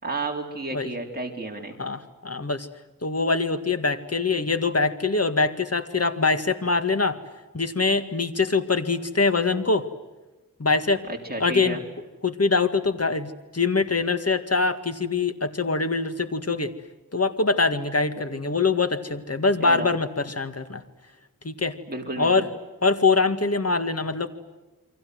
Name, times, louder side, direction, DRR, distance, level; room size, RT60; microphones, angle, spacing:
voice 1, 0.0-1.7 11.1-11.8 19.6-19.9 21.9-22.4, right 2 dB, 25° right, 1 dB, 3.9 m, -31 dB
voice 2, 1.8-2.7 3.0-7.2 7.5-9.8 10.6-11.0 11.4-11.8 12.2-16.7 17.1-20.8 21.4-21.8 22.2-22.5 22.8-24.3, left 4 dB, 45° left, 9 dB, 2.0 m, -23 dB
29.0 x 24.0 x 7.8 m, 1.2 s
wide cardioid pair, 80°, 35 cm